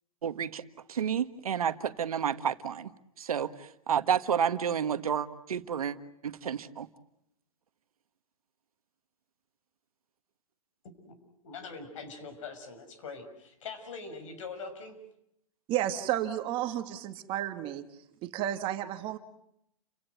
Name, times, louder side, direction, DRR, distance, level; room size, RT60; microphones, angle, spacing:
voice 1, 0.2-0.6 0.9-2.9 3.2-5.9 6.2-6.9, right 8 dB, 85° right, 11 dB, 1.5 m, -30 dB
voice 2, 11.4-15.0, left 4 dB, 60° left, 9 dB, 6.0 m, -42 dB
voice 3, 15.7-17.8 18.2-19.2, right 12 dB, 30° right, 7 dB, 1.7 m, -32 dB
30.0 x 17.0 x 9.3 m, 0.78 s
hypercardioid pair, 145°, 18 cm